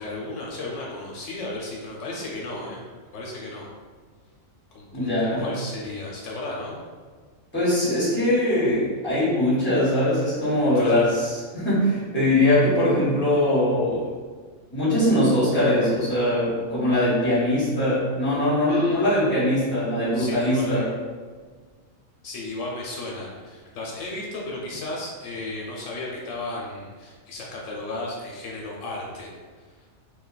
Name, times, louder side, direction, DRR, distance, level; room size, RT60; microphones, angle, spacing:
voice 1, 0.0-2.8 3.1-3.7 4.7-6.8 10.7-11.0 16.9-17.1 18.7-19.2 20.1-20.8 22.2-29.7, left 2 dB, 80° left, -2 dB, 1.0 m, -34 dB
voice 2, 4.9-5.4 7.5-11.1 11.5-14.1 14.7-20.9, left 1 dB, 10° left, -9 dB, 1.1 m, -21 dB
2.6 x 2.3 x 3.8 m, 1.5 s
omnidirectional pair, 1.3 m